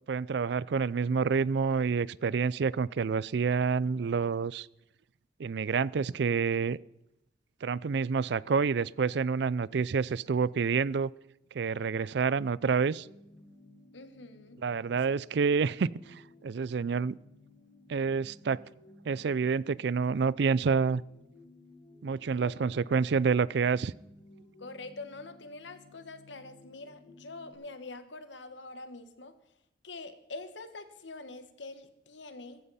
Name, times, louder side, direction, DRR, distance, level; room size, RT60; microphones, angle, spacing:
voice 1, 0.1-4.7 5.4-6.8 7.6-11.1 11.5-13.1 14.6-17.2 17.9-18.6 19.1-21.0 22.0-23.9, right 5 dB, 70° right, 0.4 m, -28 dB
sound 1, 12.7-27.5, left 2 dB, 25° left, 5.8 m, -57 dB
voice 2, 13.9-14.6 15.1-15.2 22.3-22.7 24.6-29.3 29.8-32.6, left 3 dB, 90° left, 1.5 m, -45 dB
15.0 x 15.0 x 4.2 m
head